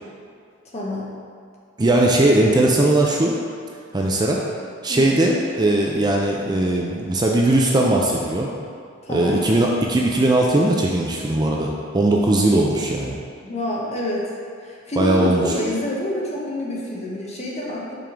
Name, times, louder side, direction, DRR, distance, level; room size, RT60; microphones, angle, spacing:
voice 1, 0.7-1.1 4.9-5.2 9.0-9.4 13.4-14.3 14.6-18.0, left 1 dB, 35° left, -3 dB, 1.0 m, -27 dB
voice 2, 1.8-3.3 3.9-4.4 4.8-8.5 9.1-13.2 15.0-15.4, right 1 dB, 20° right, -1 dB, 0.4 m, -19 dB
5.6 x 3.6 x 5.0 m, 2.3 s
head